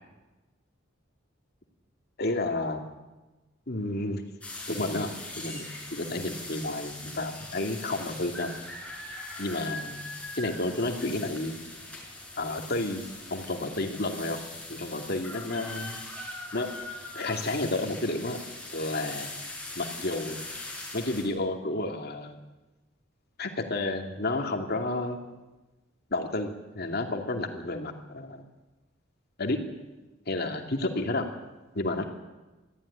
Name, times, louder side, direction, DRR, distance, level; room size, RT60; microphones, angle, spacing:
voice 1, 2.2-2.8 3.7-4.2 4.7-8.5 9.4-10.0 10.4-11.6 12.4-13.0 13.3-14.4 14.7-16.0 16.5-16.7 17.1-18.4 18.7-19.3 19.8-20.4 20.9-22.4 23.4-25.2 26.1-28.5 29.4-29.6 30.3-31.3 31.7-32.1, left 2 dB, 55° left, 4 dB, 2.6 m, -31 dB
sound 1, 4.4-21.2, left 2 dB, 5° left, 5.7 m, -41 dB
22.5 x 14.5 x 10.0 m, 1.1 s
head